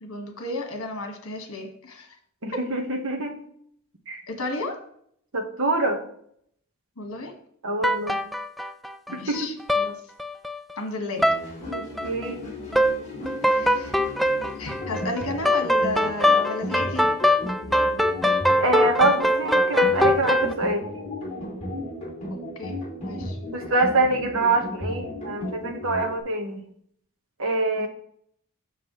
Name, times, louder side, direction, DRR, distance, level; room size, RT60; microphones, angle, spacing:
voice 1, 0.0-2.1 4.3-4.8 7.0-7.3 9.1-10.0 10.8-11.2 13.4-14.0 14.6-17.1 22.6-23.4 27.8-27.9, left 2 dB, 65° left, 4 dB, 1.6 m, -33 dB
voice 2, 2.4-3.3 4.1-4.2 5.3-6.0 7.6-8.2 9.1-9.5 11.7-12.4 18.6-20.9 23.5-26.6 27.4-27.9, right 2 dB, 65° right, 4 dB, 1.4 m, -25 dB
sound 1, 7.8-9.4 9.7-9.9 10.2-10.7 11.2-11.4 11.7-12.3 12.7-12.9 13.3-20.5, left 1 dB, ahead, 0.3 m, -22 dB
sound 2, 11.1-26.2, left 1 dB, 30° left, 2.5 m, -35 dB
7.5 x 6.6 x 3.2 m, 0.65 s
head